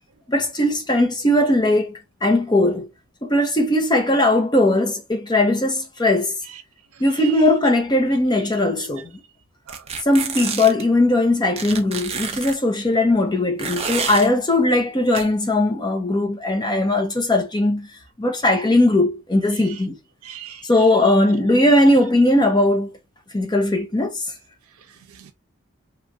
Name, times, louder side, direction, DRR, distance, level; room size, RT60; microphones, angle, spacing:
voice 1, 0.3-2.9 3.2-6.3 7.0-9.1 10.0-17.9 18.2-20.0 20.7-22.9 23.3-24.2, left 1 dB, 20° left, 0.7 m, -19 dB
voice 2, 7.1-7.4 8.8-8.9 9.7-9.8 19.5-19.8 20.2-20.9 25.2-25.3, right 10 dB, 85° right, 0.6 m, -39 dB
sound 1, 9.7-10.8 11.6-12.6 13.6-14.3 15.1-15.2, right 6 dB, 30° right, 0.4 m, -28 dB
3.0 x 2.5 x 2.5 m
head